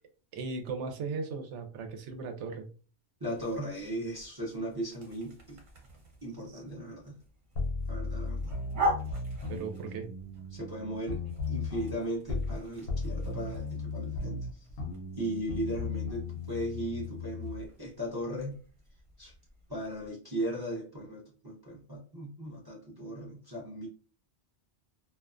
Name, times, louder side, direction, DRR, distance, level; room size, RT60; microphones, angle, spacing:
voice 1, 0.3-2.7 9.5-10.1, right 4 dB, 85° right, 5 dB, 0.9 m, -37 dB
voice 2, 3.2-5.6 6.2-7.2 7.9-8.6 10.5-14.7 15.1-18.6 19.2-19.3 19.7-23.9, right 1 dB, 30° right, -3 dB, 0.5 m, -37 dB
sound 1, 3.3-20.1, right 1 dB, 50° right, 0.9 m, -42 dB
sound 2, 7.6-12.6 12.9-17.7, left 4 dB, 65° left, 0.8 m, -36 dB
2.4 x 2.2 x 2.3 m, 0.38 s
omnidirectional pair, 1.2 m